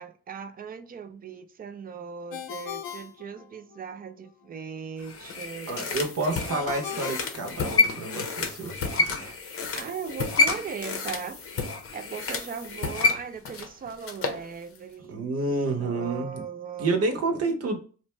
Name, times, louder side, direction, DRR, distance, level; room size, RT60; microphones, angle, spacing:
voice 1, 0.0-6.4 9.7-11.4 11.9-15.3 15.8-17.4, right 6 dB, 30° right, 0.4 m, -39 dB
Ringtone, 2.3-4.0 6.5-8.2, left 9 dB, 90° left, 0.5 m, -39 dB
sound 1, 5.0-14.4 14.8-14.9, left 4 dB, 50° left, 0.6 m, -29 dB
voice 2, 5.7-9.4 15.1-16.4 16.8-17.8, right 3 dB, 55° right, 0.8 m, -29 dB
2.5 x 2.1 x 3.1 m
cardioid pair, 90°, 30 cm